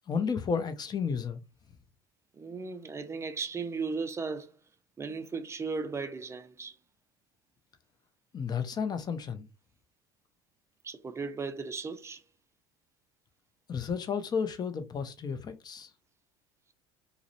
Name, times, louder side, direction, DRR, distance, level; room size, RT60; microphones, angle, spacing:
voice 1, 0.1-1.4 8.3-9.5 13.7-15.9, left 6 dB, 30° left, 0.5 m, -32 dB
voice 2, 2.3-4.5 5.0-6.7 10.8-12.2, right 4 dB, 20° right, 0.4 m, -36 dB
2.4 x 2.0 x 2.8 m
supercardioid pair, 90°, 13 cm